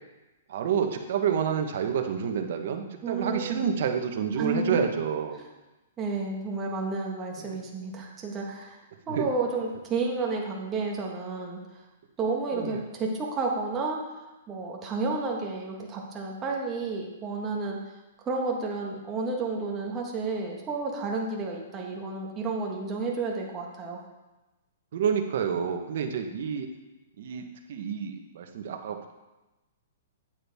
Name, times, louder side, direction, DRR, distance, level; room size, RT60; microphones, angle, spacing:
voice 1, 0.5-5.4 7.4-7.6 9.1-9.3 12.5-12.8 24.9-26.7 27.2-29.1, right 7 dB, 60° right, 5 dB, 1.1 m, -29 dB
voice 2, 3.0-3.6 4.4-4.8 6.0-8.8 9.1-11.6 12.2-14.0 14.5-17.8 18.2-24.0, right 3 dB, 20° right, -1 dB, 1.5 m, -31 dB
8.9 x 8.5 x 3.6 m, 1.1 s
hypercardioid pair, 155°, 0 cm